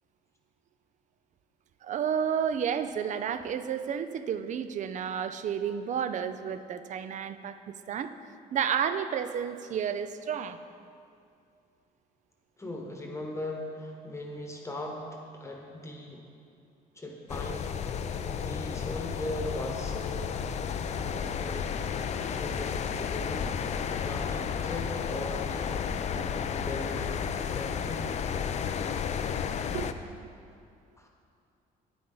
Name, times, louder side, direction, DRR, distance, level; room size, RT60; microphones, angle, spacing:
voice 1, 1.8-8.1 8.5-10.6 29.7-29.9 30.2-30.3, right 8 dB, 45° right, 11 dB, 0.5 m, -31 dB
voice 2, 12.6-16.3 16.9-17.7 18.2-20.3 21.0-21.8 22.1-25.7 26.1-27.2 27.5-28.1 31.0-31.1, left 1 dB, 15° left, 1 dB, 1.1 m, -39 dB
sound 1, 17.3-29.9, left 7 dB, 40° left, 0.4 m, -32 dB
9.4 x 8.8 x 3.9 m, 2.4 s
cardioid pair, 110°, 17 cm